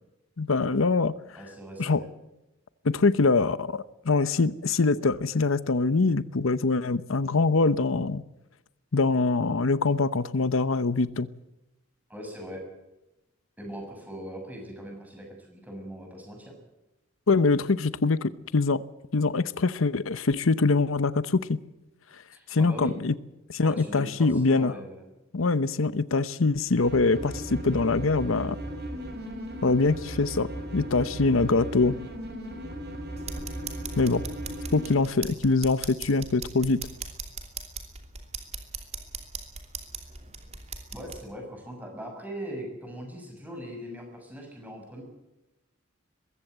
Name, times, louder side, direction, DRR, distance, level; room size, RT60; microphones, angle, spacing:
voice 1, 0.4-1.2 1.8-2.0 2.8-8.2 8.9-11.3 17.3-18.8 19.1-21.6 22.5-23.1 23.5-24.8 25.3-28.6 29.6-32.0 34.0-34.2 34.7-36.8, left 3 dB, 90° left, 16 dB, 0.8 m, -24 dB
voice 2, 1.4-2.1 12.1-12.7 13.6-16.5 22.3-22.9 23.6-25.1 39.8-39.9 40.9-45.0, equal, 10° right, 2 dB, 6.6 m, -40 dB
sound 1, 26.8-34.9, equal, 50° right, 6.0 m, -37 dB
sound 2, 33.2-41.2, right 5 dB, 35° right, 2.9 m, -40 dB
21.5 x 15.5 x 8.0 m, 0.97 s
head